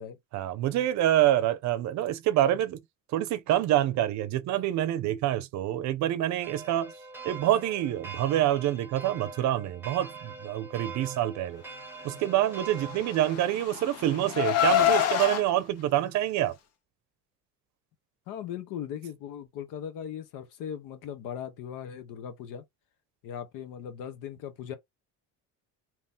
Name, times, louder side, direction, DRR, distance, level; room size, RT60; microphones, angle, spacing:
voice 1, 0.3-2.8 3.1-6.9 7.2-11.6 12.0-16.5, right 13 dB, 60° right, 0.6 m, -26 dB
sound 1, 6.4-13.4, right 4 dB, 5° right, 0.8 m, -43 dB
Car, 12.9-15.4, left 11 dB, 50° left, 0.8 m, -26 dB
voice 2, 18.3-22.6 23.2-24.8, left 9 dB, 75° left, 1.0 m, -38 dB
2.9 x 2.8 x 3.5 m
cardioid pair, 160°, 33 cm